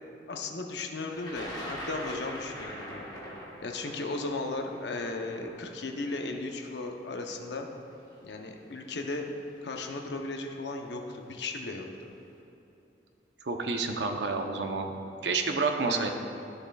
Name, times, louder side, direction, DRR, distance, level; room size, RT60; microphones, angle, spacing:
voice 1, 0.3-3.1 3.6-7.7 8.2-9.2 9.6-12.1 15.8-16.1, left 3 dB, 70° left, 3 dB, 0.7 m, -36 dB
Thunder, 1.2-7.2 8.1-8.2 9.3-9.6 9.9-10.4, equal, 25° left, 1.3 m, -42 dB
voice 2, 13.4-14.9 15.2-16.1, right 4 dB, 70° right, 4 dB, 0.7 m, -29 dB
12.5 x 6.7 x 2.3 m, 2.9 s
head